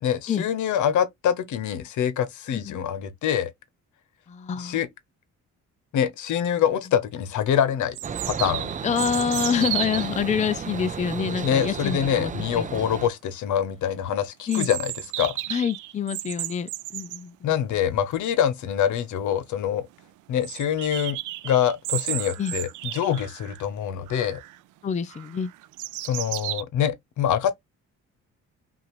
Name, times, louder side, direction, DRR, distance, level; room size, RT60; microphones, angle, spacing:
voice 1, 0.0-3.5 4.6-4.9 5.9-8.0 8.3-8.7 11.4-15.3 17.4-19.9 20.3-21.2 21.4-24.4 26.0-27.5, left 9 dB, 75° left, 0.9 m, -25 dB
voice 2, 2.5-2.8 4.3-4.8 8.8-12.7 14.5-14.7 15.5-17.5 22.4-22.6 24.8-25.5, left 7 dB, 25° left, 0.5 m, -27 dB
sound 1, 6.9-7.0 7.9-10.2 14.5-17.2 18.9-19.0 19.2-19.3 19.7-19.8 20.4-23.6 24.1-24.6 25.1-26.6, right 17 dB, 80° right, 0.5 m, -33 dB
sound 2, 8.0-13.1, right 6 dB, 25° right, 0.5 m, -33 dB
5.5 x 2.6 x 3.1 m
cardioid pair, 90°, 30 cm